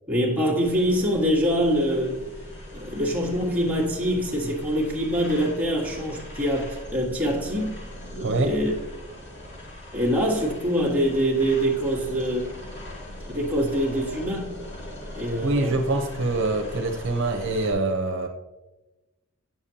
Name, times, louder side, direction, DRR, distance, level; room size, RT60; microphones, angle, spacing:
voice 1, 0.1-2.2 2.7-7.8 8.2-8.7 9.9-12.5 13.3-14.5 15.1-15.8, equal, 10° right, 1.6 m, -24 dB
sound 1, 0.6-17.7, left 1 dB, 60° left, 2.6 m, -40 dB
voice 2, 8.2-8.5 15.4-18.3, right 2 dB, 60° right, 0.8 m, -25 dB
9.1 x 6.9 x 2.8 m
head